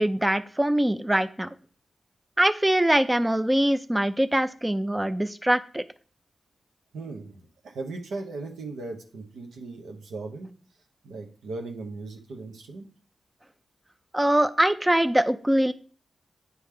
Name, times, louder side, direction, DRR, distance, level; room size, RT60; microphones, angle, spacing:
voice 1, 0.0-1.5 2.4-5.8 14.1-15.7, right 1 dB, 15° right, 12 dB, 0.4 m, -23 dB
voice 2, 6.9-10.5 11.0-12.9, right 3 dB, 90° right, 3 dB, 0.9 m, -38 dB
9.5 x 3.4 x 3.3 m, 0.42 s
supercardioid pair, 45°, 0 cm